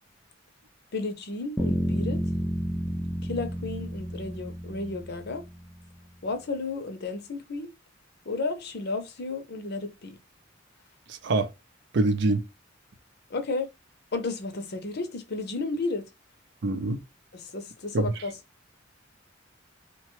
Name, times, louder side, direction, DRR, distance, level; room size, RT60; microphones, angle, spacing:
voice 1, 0.9-2.2 3.2-5.4 6.2-7.7 8.3-10.2 13.3-13.7 14.1-16.1 17.3-18.3, left 3 dB, 55° left, 0.6 m, -33 dB
sound 1, 1.6-5.6, equal, 5° left, 0.4 m, -31 dB
voice 2, 11.1-11.5 11.9-12.5 16.6-17.0 17.9-18.1, right 2 dB, 60° right, 0.5 m, -25 dB
2.8 x 2.2 x 3.0 m
head